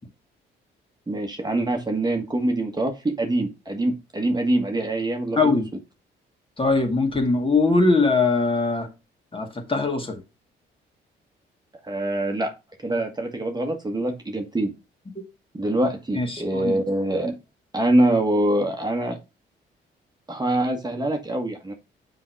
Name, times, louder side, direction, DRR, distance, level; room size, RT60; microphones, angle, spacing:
voice 1, 1.1-5.4 11.9-12.5 12.8-14.7 15.5-17.3 17.7-19.2 20.3-21.7, right 1 dB, 20° right, 1.5 m, -24 dB
voice 2, 5.4-5.7 6.6-8.9 9.3-10.2 16.1-16.8, left 3 dB, 25° left, 2.2 m, -21 dB
6.2 x 4.6 x 4.7 m
supercardioid pair, 60°, 20 cm